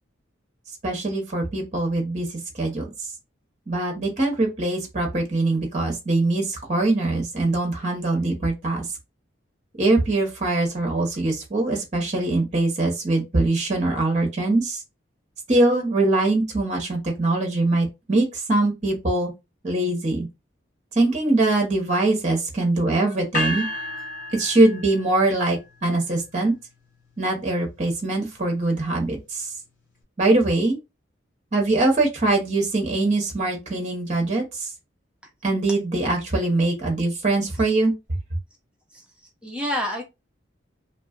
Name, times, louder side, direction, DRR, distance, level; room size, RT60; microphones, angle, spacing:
voice 1, 0.8-2.3 2.6-2.9 3.7-8.9 9.8-14.8 15.5-19.3 19.6-20.3 20.9-23.6 24.3-26.5 27.2-29.5 30.2-30.8 31.5-34.5 35.4-37.9, right 2 dB, 35° right, 0.9 m, -22 dB
sound 1, 23.3-25.4, left 1 dB, 45° left, 0.8 m, -31 dB
voice 2, 39.4-40.0, left 1 dB, 5° right, 0.5 m, -28 dB
2.7 x 2.3 x 2.3 m
head